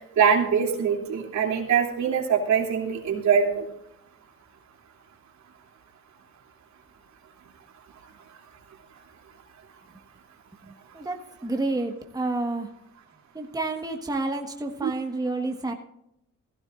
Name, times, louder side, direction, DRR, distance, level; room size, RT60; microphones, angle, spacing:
voice 1, 0.0-3.6 14.8-14.9, right 7 dB, 65° right, 1 dB, 3.1 m, -23 dB
voice 2, 10.9-12.7 13.3-15.7, right 2 dB, 10° right, 3 dB, 1.4 m, -29 dB
16.5 x 15.5 x 2.5 m, 0.81 s
cardioid pair, 90°, 30 cm